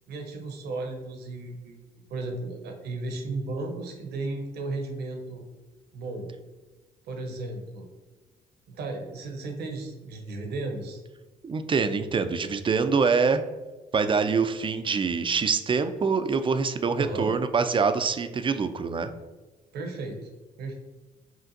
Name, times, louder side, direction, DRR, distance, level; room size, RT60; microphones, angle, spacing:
voice 1, 0.1-1.8 2.1-5.4 5.9-6.3 7.0-7.9 8.7-11.0 17.0-17.3 19.7-20.3 20.6-20.7, right 2 dB, 65° right, 3 dB, 0.8 m, -34 dB
voice 2, 11.4-13.4 13.9-19.1, right 5 dB, 30° right, 9 dB, 0.4 m, -25 dB
5.6 x 2.5 x 2.6 m, 1.2 s
hypercardioid pair, 45°, 18 cm